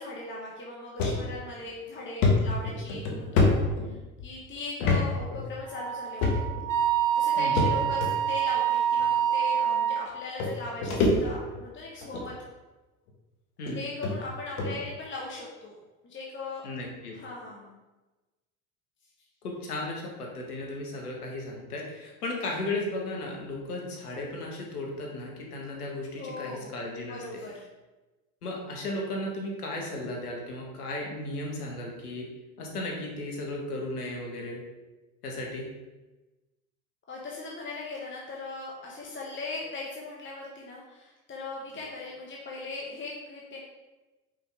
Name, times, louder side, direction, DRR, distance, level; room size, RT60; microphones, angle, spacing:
voice 1, 0.0-6.5 7.1-12.3 13.7-15.8 16.0-16.8 17.1-17.8 26.1-26.7 27.1-27.7 37.1-43.6, left 3 dB, 25° left, -3 dB, 1.3 m, -39 dB
sound 1, 1.0-1.2 1.6-1.7 2.2-4.3 4.8-5.0 5.3-5.4 6.2-6.7 7.6-8.1 9.0-9.1 10.1-10.2 10.4-11.6 12.0-12.3 13.1-13.2 13.7-13.8 14.0-14.1 14.6-14.8, left 3 dB, 70° left, 1.6 m, -25 dB
Wind instrument woodwind instrument, 5.7-10.0, right 9 dB, 45° right, 1.1 m, -26 dB
voice 2, 16.6-17.2 19.4-27.4 28.4-32.3 32.6-34.6 35.2-35.7, left 2 dB, 85° left, -1 dB, 1.6 m, -35 dB
5.5 x 5.5 x 3.5 m, 1.1 s
hypercardioid pair, 75°, 44 cm